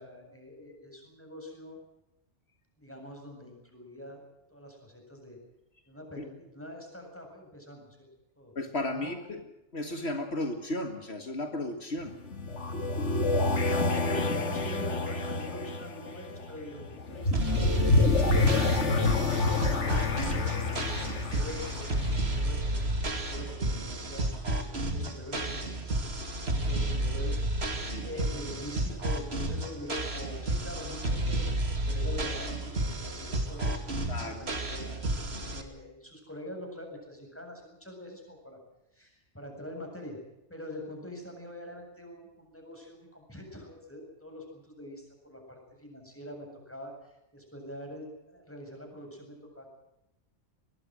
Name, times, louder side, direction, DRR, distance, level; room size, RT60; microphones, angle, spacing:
voice 1, 0.0-1.8 2.8-4.2 4.5-5.4 5.9-8.1 8.4-8.5 8.9-9.1 13.5-22.8 23.2-24.3 24.7-25.9 26.5-27.4 27.7-38.6 38.9-40.2 40.5-49.7, left 1 dB, 10° left, 2 dB, 7.6 m, -44 dB
voice 2, 8.6-9.4 9.7-12.2 27.8-28.1 34.1-34.5, left 1 dB, 65° left, 6 dB, 2.1 m, -34 dB
sound 1, 12.0-22.8, left 3 dB, 80° left, 2.4 m, -28 dB
sound 2, 17.3-35.6, right 1 dB, 65° right, 2.9 m, -31 dB
22.5 x 21.5 x 6.3 m, 0.92 s
omnidirectional pair, 1.2 m